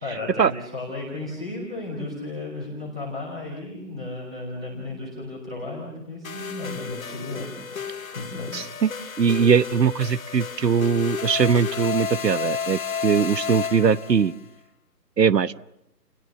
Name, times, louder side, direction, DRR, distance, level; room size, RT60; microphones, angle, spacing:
voice 1, 0.0-8.5, left 2 dB, 5° right, -6 dB, 1.3 m, -34 dB
sound 1, 6.2-14.3, left 6 dB, 55° left, 1.2 m, -32 dB
voice 2, 8.5-8.9 9.2-14.3 15.2-15.6, right 6 dB, 75° right, 17 dB, 1.0 m, -21 dB
30.0 x 28.0 x 6.9 m, 0.80 s
hypercardioid pair, 180°, 50 cm